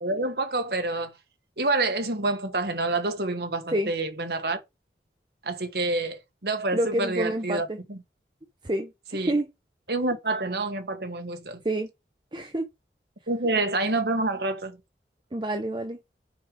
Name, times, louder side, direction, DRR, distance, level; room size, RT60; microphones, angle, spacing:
voice 1, 0.0-1.1 1.6-4.6 5.4-8.0 9.1-9.4 9.9-11.6 13.3-14.8, right 2 dB, 65° right, 1.6 m, -28 dB
voice 2, 6.7-7.8 8.6-9.4 11.6-11.9 12.3-12.7 15.3-16.0, right 1 dB, 25° right, 0.8 m, -28 dB
6.7 x 5.3 x 4.9 m
head